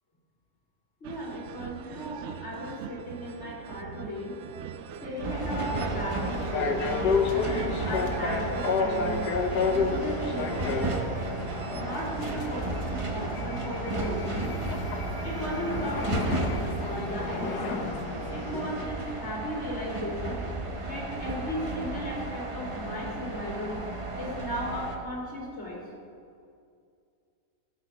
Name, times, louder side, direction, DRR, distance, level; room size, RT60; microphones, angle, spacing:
voice 1, 1.0-4.4 5.0-9.3 9.7-11.0 11.7-14.5 15.2-17.7 18.3-20.4 20.8-23.8 24.2-25.8, equal, 45° left, -4 dB, 3.1 m, -36 dB
sound 1, 1.0-18.9, right 8 dB, 75° right, 0.6 m, -42 dB
sound 2, 5.0-18.9, left 4 dB, 90° left, 1.6 m, -31 dB
sound 3, 5.2-25.0, right 2 dB, 25° right, 0.8 m, -34 dB
15.5 x 7.6 x 5.8 m, 2.4 s
omnidirectional pair, 1.7 m